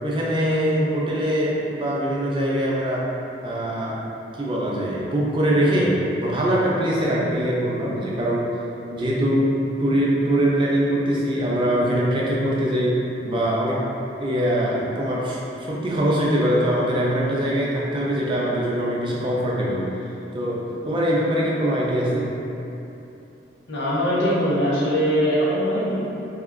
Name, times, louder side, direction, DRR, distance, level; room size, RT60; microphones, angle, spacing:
voice 1, 0.0-3.1 3.4-4.0 4.4-8.5 8.9-9.5 9.8-13.8 14.2-19.8 20.3-22.3, equal, 25° right, -5 dB, 0.4 m, -22 dB
voice 2, 23.7-26.0, equal, 80° left, -7 dB, 0.7 m, -21 dB
3.1 x 2.7 x 2.5 m, 2.9 s
head